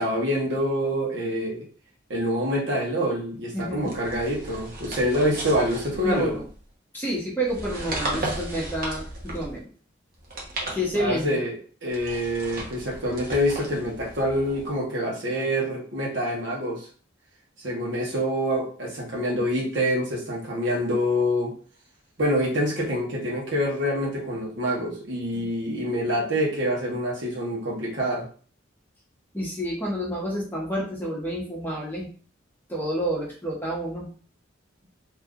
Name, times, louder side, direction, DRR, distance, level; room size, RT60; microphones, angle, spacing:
voice 1, 0.0-1.7 2.1-6.4 10.9-11.6 11.8-16.9 17.6-21.5 22.2-28.3, equal, 65° right, -2 dB, 1.1 m, -26 dB
voice 2, 3.5-3.9 6.0-6.4 6.9-9.7 10.7-11.4 25.3-25.5 29.3-32.1 32.7-34.1, equal, 10° left, -5 dB, 1.0 m, -29 dB
sound 1, 3.8-6.6 7.4-9.6 10.2-11.3 11.9-14.7, right 2 dB, 50° right, 0.9 m, -35 dB
2.8 x 2.4 x 3.7 m, 0.41 s
head